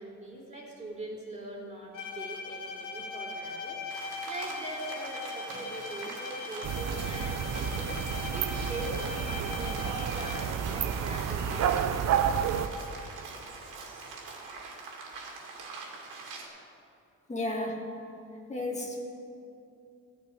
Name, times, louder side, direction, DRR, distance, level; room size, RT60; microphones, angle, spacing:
voice 1, 0.0-8.1 8.3-12.1, right 1 dB, 25° right, -2 dB, 3.1 m, -42 dB
Bowed string instrument, 1.9-10.7, left 4 dB, 85° left, 1.9 m, -40 dB
Rain, 3.9-16.5, right 4 dB, 85° right, 2.3 m, -43 dB
sound 1, 6.6-12.7, right 8 dB, 60° right, 0.7 m, -30 dB
voice 2, 17.3-17.8 18.5-19.0, left 1 dB, 25° left, -1 dB, 2.2 m, -32 dB
14.0 x 6.0 x 9.8 m, 2.6 s
cardioid pair, 90°, 30 cm